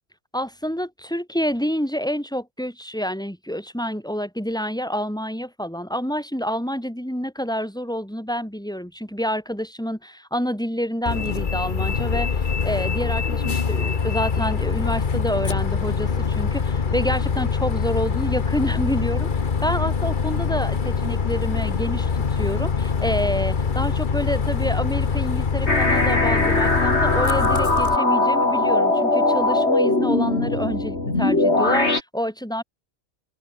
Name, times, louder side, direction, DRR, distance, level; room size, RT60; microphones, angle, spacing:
voice 1, 0.3-19.3 19.6-32.6, equal, 5° left, 7.4 m, -28 dB
Bus, 11.1-28.0, left 5 dB, 45° left, 1.3 m, -24 dB
sound 1, 25.7-32.0, left 2 dB, 70° left, 4.7 m, -20 dB
open air
omnidirectional pair, 1.2 m